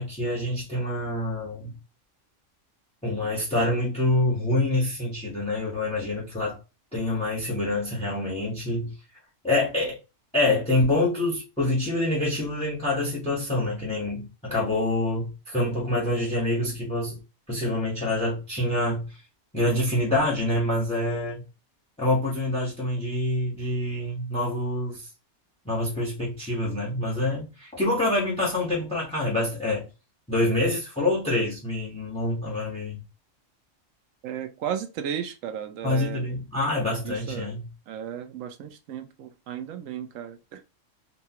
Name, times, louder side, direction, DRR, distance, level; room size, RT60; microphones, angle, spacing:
voice 1, 0.0-1.8 3.0-6.6 6.9-8.9 9.4-10.0 10.3-17.2 17.5-19.2 19.5-21.4 22.0-25.1 25.6-29.8 30.3-33.0 35.8-37.7, left 1 dB, 5° left, 1.0 m, -26 dB
voice 2, 34.2-36.2 37.0-37.5 37.9-40.6, right 9 dB, 85° right, 1.0 m, -34 dB
4.1 x 2.3 x 2.8 m
omnidirectional pair, 1.3 m